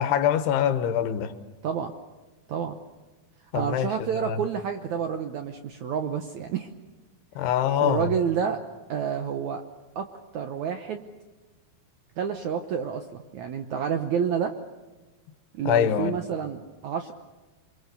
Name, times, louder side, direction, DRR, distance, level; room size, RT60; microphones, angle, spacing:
voice 1, 0.0-1.3 3.5-4.4 7.4-8.1 15.7-16.1, left 9 dB, 85° left, 11 dB, 3.2 m, -24 dB
voice 2, 3.5-6.7 7.8-8.6 8.9-9.6 10.0-11.0 12.2-14.6 15.5-17.1, right 7 dB, 75° right, 7 dB, 1.8 m, -29 dB
28.5 x 23.5 x 6.9 m, 1.2 s
omnidirectional pair, 4.6 m